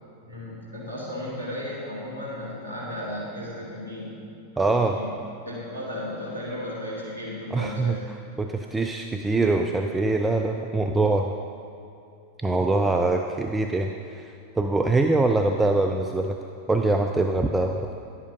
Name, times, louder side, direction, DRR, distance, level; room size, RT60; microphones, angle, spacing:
voice 1, 0.2-4.2 4.5-5.2 5.4-8.1 12.7-13.1, left 1 dB, 90° left, -7 dB, 2.2 m, -35 dB
voice 2, 4.6-5.0 7.5-8.0 8.4-11.3 12.4-16.4 16.7-17.9, right 2 dB, 10° right, 4 dB, 0.4 m, -23 dB
11.5 x 8.2 x 3.7 m, 2.6 s
figure-of-eight pair, 90°, 0 cm